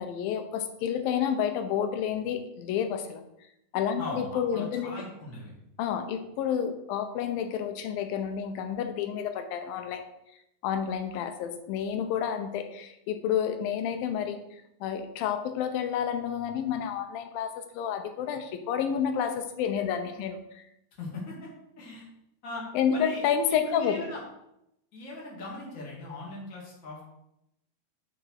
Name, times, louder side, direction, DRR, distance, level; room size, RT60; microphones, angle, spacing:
voice 1, 0.0-3.2 3.7-5.0 5.8-10.1 10.6-20.7 22.7-24.1, left 8 dB, 90° left, 7 dB, 2.5 m, -30 dB
voice 2, 4.0-5.6 21.0-21.5 21.8-22.1 22.4-22.6 22.9-23.2 23.7-24.2 24.9-27.1, left 2 dB, 30° left, -3 dB, 2.0 m, -39 dB
9.1 x 4.9 x 4.7 m, 0.83 s
omnidirectional pair, 4.0 m